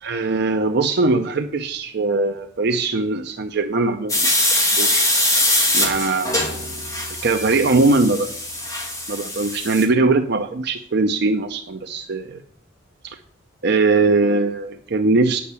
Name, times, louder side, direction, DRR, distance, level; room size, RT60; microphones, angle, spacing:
voice 1, 0.0-5.1 5.7-6.3 7.2-8.3 9.1-12.4 13.0-13.2 13.6-15.4, right 3 dB, 60° right, 6 dB, 0.6 m, -20 dB
sound 1, 4.1-9.8, left 1 dB, 15° left, 2.9 m, -22 dB
8.5 x 6.5 x 8.2 m, 0.63 s
head